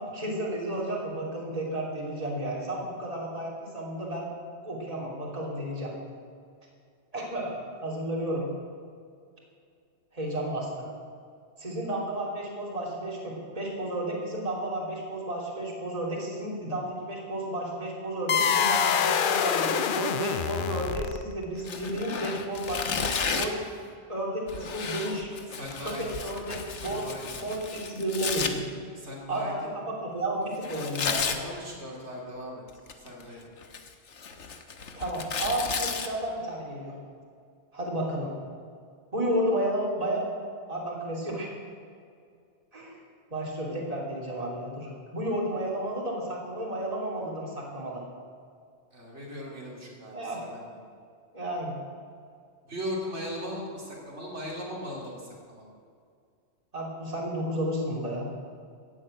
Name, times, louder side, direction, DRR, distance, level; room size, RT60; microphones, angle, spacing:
voice 1, 0.0-4.3 4.6-5.9 7.1-8.4 10.1-10.9 11.6-23.6 24.1-25.3 25.8-27.1 27.4-28.6 29.3-31.4 35.0-36.9 37.7-38.3 39.1-40.2 40.7-41.5 42.7-43.0 43.3-48.0 50.1-50.4 51.3-51.7 56.7-58.3, right 1 dB, 30° right, -3 dB, 3.1 m, -32 dB
sound 1, 18.3-21.4, left 7 dB, 55° left, 0.7 m, -25 dB
Tearing, 21.6-23.6 24.5-28.5 30.6-31.4 32.7-33.2 33.6-36.1, left 5 dB, 80° left, 1.4 m, -33 dB
voice 2, 25.5-26.3 26.7-27.6 28.9-29.8 31.4-32.6 33.0-33.5 48.9-50.8 52.7-55.7, equal, 75° right, -3 dB, 3.0 m, -39 dB
15.0 x 8.4 x 8.9 m, 2.2 s
omnidirectional pair, 1.2 m